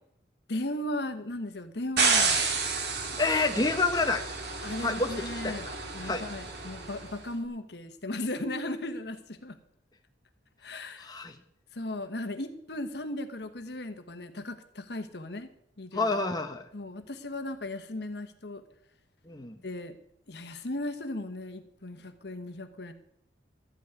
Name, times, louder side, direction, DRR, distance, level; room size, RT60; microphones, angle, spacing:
voice 1, 0.5-2.5 4.6-5.7 5.9-9.6 10.6-11.1 11.7-15.5 15.8-16.1 16.7-18.6 19.6-20.0 20.3-22.9, left 1 dB, 60° left, 9 dB, 1.2 m, -36 dB
sound 1, 2.0-7.1, right 4 dB, 60° right, 2.5 m, -30 dB
voice 2, 3.2-4.2 4.8-5.1 5.4-5.7 6.0-6.2 11.0-11.3 15.9-16.7 19.3-19.5, left 3 dB, 20° left, 4 dB, 0.8 m, -28 dB
13.0 x 6.2 x 9.5 m, 0.73 s
head